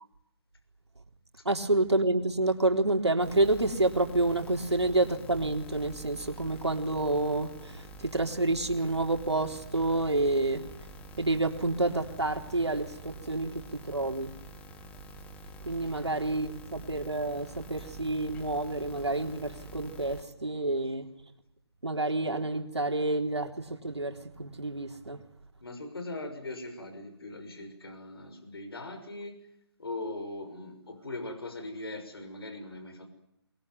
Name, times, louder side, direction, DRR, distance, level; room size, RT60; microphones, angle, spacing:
voice 1, 1.4-10.9 11.2-14.3 15.6-21.1 21.8-25.2, right 2 dB, 85° right, 3.8 m, -29 dB
sound 1, 3.2-20.2, right 1 dB, 10° left, 1.7 m, -48 dB
voice 2, 25.6-29.4 29.8-33.1, left 2 dB, 60° left, 6.2 m, -40 dB
23.0 x 22.0 x 9.4 m
figure-of-eight pair, 155°, 14 cm